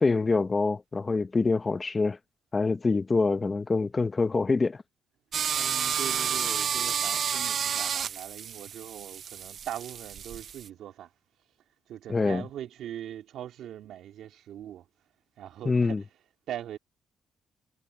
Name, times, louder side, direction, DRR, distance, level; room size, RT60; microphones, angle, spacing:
voice 1, 0.0-2.2 2.5-4.8 12.1-12.4 15.6-16.0, left 3 dB, 30° left, 0.8 m, -25 dB
sound 1, 5.3-10.7, right 8 dB, 55° right, 0.4 m, -30 dB
voice 2, 5.4-11.1 11.9-14.9 15.4-16.1 16.5-16.8, right 11 dB, 80° right, 2.9 m, -41 dB
cardioid pair, 90°, 0 cm